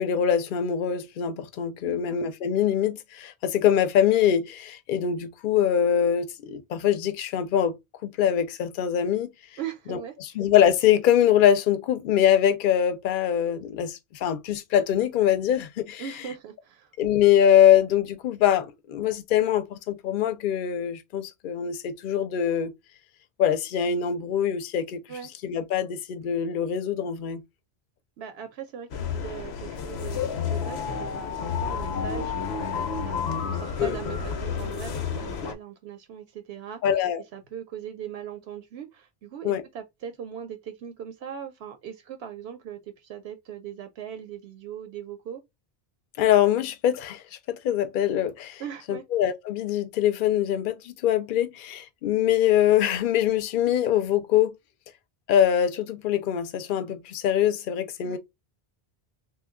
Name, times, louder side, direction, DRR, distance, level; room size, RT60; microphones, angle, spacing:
voice 1, 0.0-9.3 9.9-16.0 17.0-22.7 23.4-25.0 25.4-27.4 33.8-33.9 36.8-37.2 39.4-39.6 46.2-48.6 48.9-54.5 55.3-58.2, left 10 dB, 60° left, 0.7 m, -23 dB
voice 2, 1.8-2.2 9.6-10.1 16.0-16.9 25.1-25.3 28.2-36.8 37.3-45.4 48.6-49.0 58.0-58.2, right 9 dB, 85° right, 0.8 m, -39 dB
sound 1, 28.9-35.5, left 6 dB, 90° left, 0.9 m, -30 dB
3.1 x 2.2 x 3.6 m
omnidirectional pair, 1.0 m